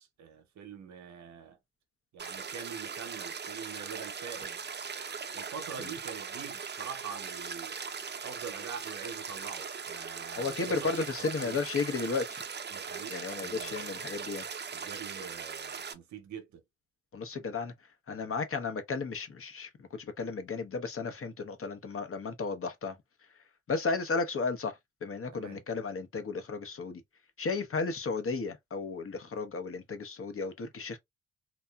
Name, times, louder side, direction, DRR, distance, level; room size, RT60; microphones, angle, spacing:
voice 1, 0.0-1.6 2.1-4.6 5.3-7.8 8.2-11.6 12.7-14.0 14.7-16.6 25.3-25.6, right 7 dB, 75° right, 0.7 m, -44 dB
sound 1, 2.2-15.9, right 6 dB, 35° right, 0.5 m, -40 dB
voice 2, 10.4-12.4 13.1-14.5 17.1-17.7 18.1-23.0 23.7-27.0 27.4-31.0, left 4 dB, 50° left, 0.8 m, -34 dB
2.8 x 2.3 x 2.2 m
supercardioid pair, 40°, 29 cm